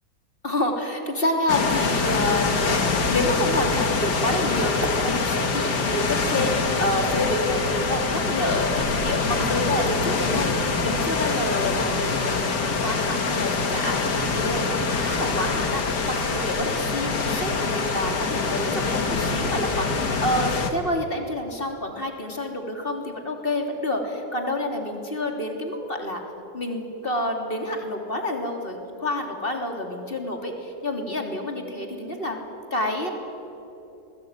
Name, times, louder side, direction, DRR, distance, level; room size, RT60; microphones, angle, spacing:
voice 1, 0.4-26.2 26.5-32.4 32.7-33.1, left 1 dB, 25° left, 3 dB, 3.5 m, -28 dB
sound 1, 1.5-20.7, left 4 dB, 60° left, 2.6 m, -25 dB
27.0 x 21.5 x 9.8 m, 2.9 s
omnidirectional pair, 2.1 m